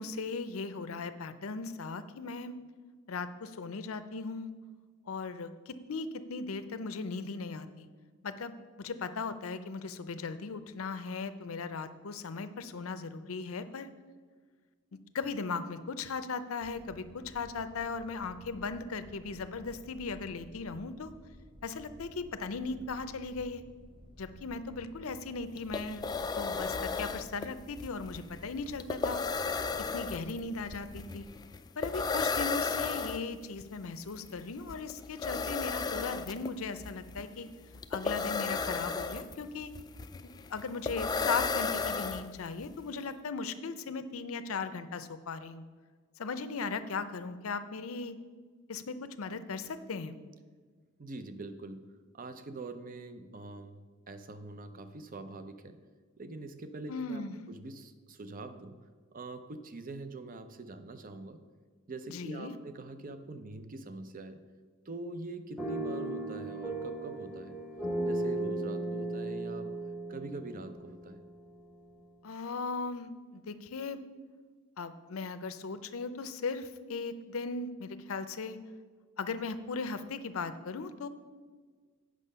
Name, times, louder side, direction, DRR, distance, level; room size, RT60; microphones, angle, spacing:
voice 1, 0.0-2.5 3.1-4.5 5.1-7.9 8.2-8.5 8.8-13.9 14.9-21.1 21.6-23.6 24.2-26.1 26.4-29.2 29.9-31.3 31.8-37.5 37.9-39.7 40.2-45.6 46.2-48.2 48.7-50.2 56.9-57.4 62.1-62.6 72.2-74.0 74.8-78.6 79.2-81.1, left 4 dB, 80° left, 11 dB, 0.6 m, -38 dB
sound 1, 16.6-31.4, equal, 25° right, 1.0 m, -54 dB
sound 2, 25.3-25.4 25.6-42.7, left 4 dB, 20° left, 0.3 m, -34 dB
voice 2, 51.0-51.8 52.1-53.8 54.1-55.8 56.2-57.2 57.5-58.8 59.1-61.4 61.9-64.4 64.9-67.6 68.0-69.8 70.1-71.2, right 2 dB, 40° right, 10 dB, 0.6 m, -44 dB
sound 3, 65.6-71.6, right 2 dB, 5° right, 1.1 m, -36 dB
8.4 x 6.4 x 5.5 m, 1.5 s
head